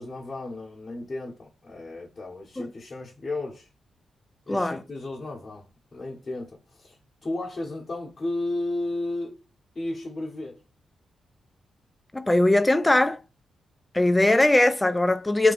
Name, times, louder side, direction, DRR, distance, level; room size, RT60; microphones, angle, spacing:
voice 1, 0.0-3.7 4.5-5.7 5.9-6.9 7.2-9.4 9.7-10.6, left 2 dB, 35° left, 1.1 m, -33 dB
voice 2, 4.5-4.8 12.1-13.2 13.9-15.5, left 1 dB, 15° left, 0.5 m, -20 dB
2.7 x 2.2 x 4.0 m
supercardioid pair, 55°, 0 cm